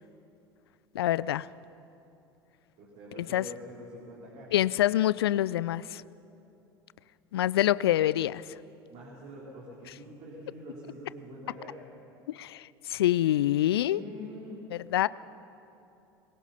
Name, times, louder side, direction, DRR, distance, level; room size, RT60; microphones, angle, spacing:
voice 1, 0.9-1.5 3.2-3.4 4.5-6.0 7.3-8.4 12.3-14.0 14.7-15.1, left 13 dB, 70° left, 20 dB, 0.4 m, -26 dB
voice 2, 2.8-4.5 8.9-11.8 13.8-14.7, equal, 50° right, -4 dB, 3.8 m, -45 dB
21.5 x 21.0 x 5.6 m, 2.8 s
figure-of-eight pair, 70°, 13 cm